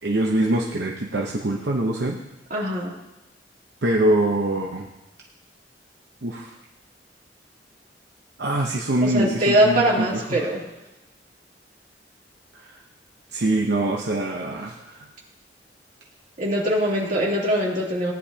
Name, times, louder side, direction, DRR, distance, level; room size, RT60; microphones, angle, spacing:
voice 1, 0.0-2.2 3.8-4.9 6.2-6.5 8.4-10.4 12.5-12.8 13.3-15.1, right 1 dB, 70° right, 0 dB, 0.9 m, -24 dB
voice 2, 2.5-2.9 9.0-10.6 16.4-18.1, right 1 dB, 50° right, -5 dB, 3.2 m, -22 dB
18.0 x 10.5 x 2.9 m, 0.96 s
head